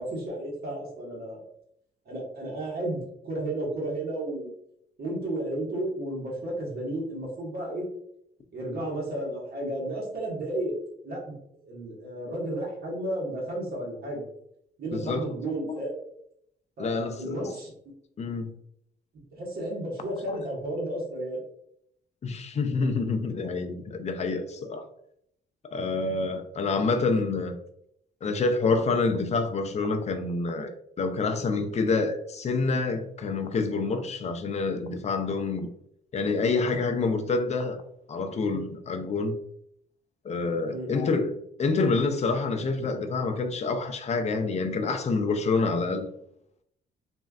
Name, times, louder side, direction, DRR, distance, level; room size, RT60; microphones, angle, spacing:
voice 1, 0.0-1.4 2.0-4.5 5.0-7.8 8.5-10.7 11.0-11.3 11.6-14.2 14.8-15.9 16.8-17.7 19.3-21.4 40.7-40.9, right 1 dB, 50° right, 1.4 m, -33 dB
voice 2, 14.9-15.3 16.8-17.6 18.2-18.5 20.3-20.4 22.2-24.9 25.6-27.5 28.2-30.7 31.0-35.7 36.1-37.8 38.1-39.3 40.2-41.3 41.6-46.1, left 3 dB, 35° left, 0.4 m, -27 dB
3.0 x 2.6 x 2.4 m
cardioid pair, 90°, 20 cm